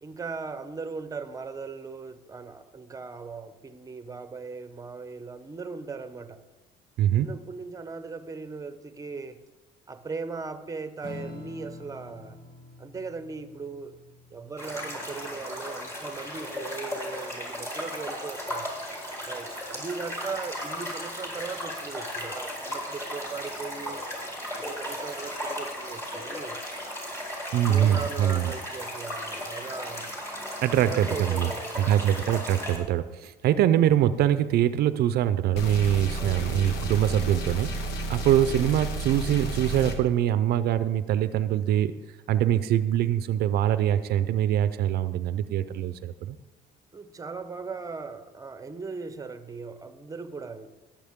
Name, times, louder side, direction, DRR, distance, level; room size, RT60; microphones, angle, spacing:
voice 1, 0.0-6.4 7.1-9.4 9.9-12.4 12.8-14.0 14.3-18.7 19.2-24.0 24.6-26.6 27.5-30.1 30.9-32.1 36.2-36.6 46.9-50.7, right 4 dB, 20° right, 11 dB, 0.8 m, -38 dB
Strum, 11.0-17.9, left 2 dB, 55° left, 2.0 m, -47 dB
sound 1, 14.6-32.8, equal, 15° left, 3.4 m, -35 dB
voice 2, 27.5-28.5 30.6-31.5 31.8-37.7 38.1-41.9 42.3-46.4, right 11 dB, 70° right, 13 dB, 0.5 m, -23 dB
sound 2, 35.6-40.0, right 2 dB, 85° left, 1.3 m, -32 dB
18.0 x 7.3 x 3.6 m, 1.2 s
cardioid pair, 110°, 17 cm